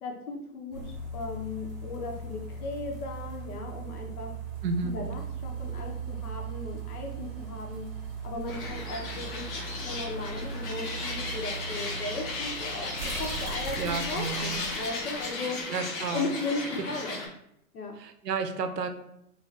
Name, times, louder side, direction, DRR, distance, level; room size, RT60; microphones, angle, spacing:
voice 1, 0.0-4.3 4.8-7.9 8.2-9.5 9.7-15.6 16.1-17.2 17.7-17.9, left 3 dB, 65° left, 2 dB, 0.9 m, -36 dB
sound 1, 0.7-16.4 16.8-16.9, right 4 dB, 20° right, 0.8 m, -39 dB
voice 2, 4.6-5.0 13.8-14.7 15.7-16.3 18.0-18.9, right 5 dB, 85° right, 7 dB, 0.6 m, -31 dB
sound 2, 8.5-17.3, left 3 dB, 25° left, 0.6 m, -35 dB
3.3 x 2.2 x 3.2 m, 0.79 s
hypercardioid pair, 115°, 47 cm